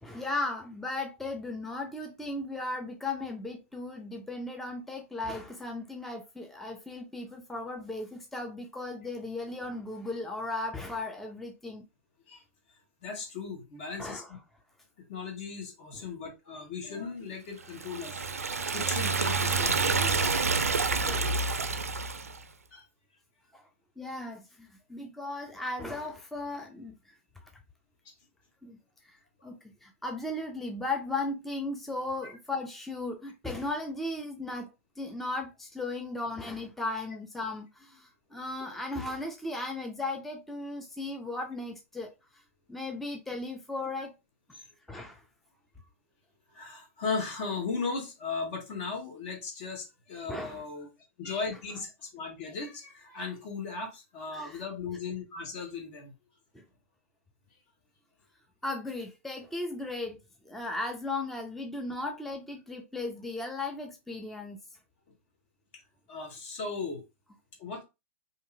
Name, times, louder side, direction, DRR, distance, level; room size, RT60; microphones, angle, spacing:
voice 1, 0.0-11.8 14.0-14.3 21.0-21.4 23.5-23.6 24.0-26.9 28.6-28.8 29.0-34.7 35.0-42.1 42.7-44.1 44.9-45.2 50.3-50.7 54.3-54.6 56.5-56.6 58.6-60.2 60.5-64.6, left 2 dB, 5° left, 0.4 m, -36 dB
voice 2, 13.0-14.4 15.1-18.2 18.7-20.4 22.7-22.8 32.2-32.3 46.5-50.9 51.2-56.1 66.1-67.0 67.6-67.8, left 4 dB, 50° left, 1.4 m, -37 dB
Liquid, 17.7-22.4, right 4 dB, 90° right, 0.3 m, -28 dB
2.8 x 2.6 x 2.5 m
hypercardioid pair, 110°, 8 cm